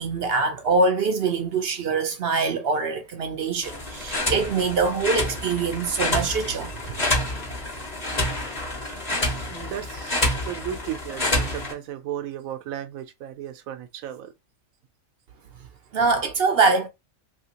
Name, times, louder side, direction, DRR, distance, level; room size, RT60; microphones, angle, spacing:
voice 1, 0.0-6.7 15.9-16.9, right 4 dB, 60° right, 0.6 m, -23 dB
sound 1, 3.6-11.7, left 1 dB, 35° left, 1.0 m, -28 dB
voice 2, 8.7-14.3, right 10 dB, 85° right, 1.0 m, -36 dB
3.0 x 2.8 x 2.8 m
omnidirectional pair, 1.4 m